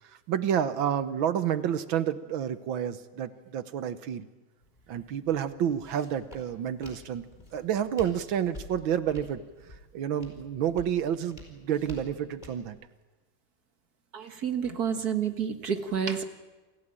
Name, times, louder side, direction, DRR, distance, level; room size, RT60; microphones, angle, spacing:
voice 1, 0.3-4.3 4.9-9.4 9.9-12.8, right 9 dB, 75° right, 12 dB, 1.8 m, -29 dB
Walk footsteps, 4.6-12.7, left 1 dB, 20° left, 4.7 m, -49 dB
voice 2, 14.1-16.2, right 7 dB, 50° right, 7 dB, 2.0 m, -29 dB
28.0 x 16.5 x 8.9 m, 1.2 s
omnidirectional pair, 2.2 m